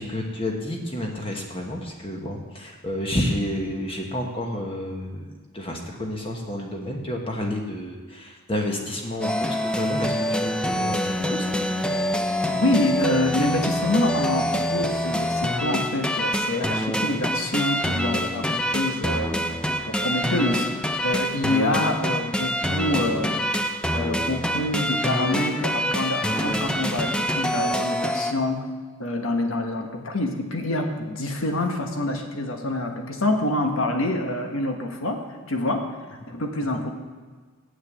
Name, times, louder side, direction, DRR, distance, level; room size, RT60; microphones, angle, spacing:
voice 1, 0.0-11.5, left 1 dB, 25° left, 1 dB, 1.1 m, -30 dB
sound 1, 9.2-28.3, equal, 5° left, 0.4 m, -26 dB
voice 2, 12.5-19.4 19.9-20.7 21.0-23.5 23.9-28.6 29.0-35.9 36.3-36.9, left 2 dB, 75° left, 4 dB, 1.3 m, -26 dB
7.5 x 6.6 x 8.1 m, 1.5 s
head